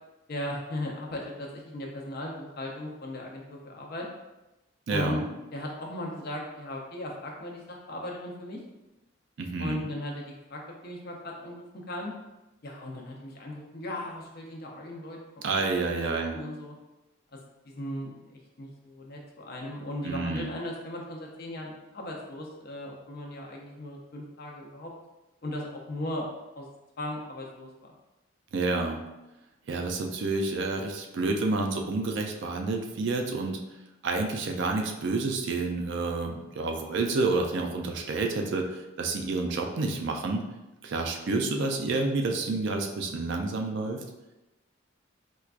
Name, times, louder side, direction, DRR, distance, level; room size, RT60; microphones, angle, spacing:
voice 1, 0.3-4.1 4.9-5.2 5.5-8.6 9.6-12.1 12.6-15.4 15.9-16.0 16.3-16.7 17.3-24.9 25.4-26.3 26.5-26.7 27.0-27.9, left 1 dB, 45° left, -1 dB, 0.6 m, -37 dB
voice 2, 4.9-5.3 9.4-9.8 15.4-16.3 20.0-20.5 28.5-29.0 29.7-33.6 34.0-40.4 40.8-44.0, right 3 dB, 55° right, 3 dB, 0.4 m, -29 dB
4.4 x 2.3 x 2.4 m, 1.0 s
head